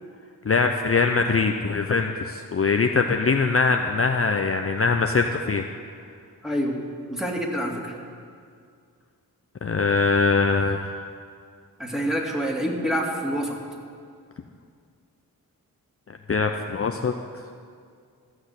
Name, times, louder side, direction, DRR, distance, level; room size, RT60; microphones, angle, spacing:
voice 1, 0.4-5.6 9.6-10.9 16.3-17.1, left 4 dB, 40° left, 5 dB, 0.7 m, -22 dB
voice 2, 6.4-6.8 7.1-8.0 11.8-13.6, equal, ahead, -1 dB, 2.5 m, -27 dB
14.5 x 6.3 x 8.2 m, 2.2 s
cardioid pair, 50°, 36 cm